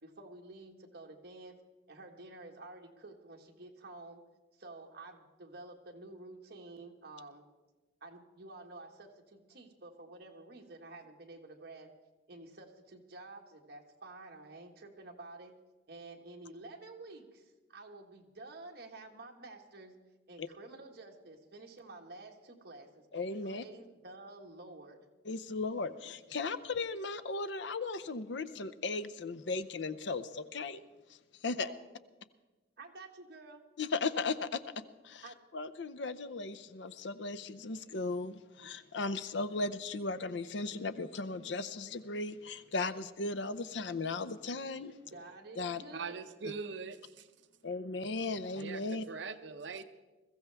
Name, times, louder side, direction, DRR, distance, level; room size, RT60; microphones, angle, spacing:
voice 1, 0.0-1.6 1.9-4.2 4.6-7.4 8.0-11.9 12.3-15.5 15.9-20.0 20.3-23.0 23.4-25.0 31.4-31.8 32.8-33.6 35.2-35.4 45.0-46.1, right 2 dB, 60° right, 1.7 m, -50 dB
voice 2, 23.1-23.6 25.3-30.8 31.4-31.7 33.8-34.6 35.0-35.2 35.5-44.9 45.6-45.8 47.6-49.0, left 3 dB, 70° left, 0.7 m, -36 dB
voice 3, 45.9-47.3 48.5-49.8, right 5 dB, 75° right, 0.7 m, -42 dB
21.5 x 15.0 x 3.5 m
head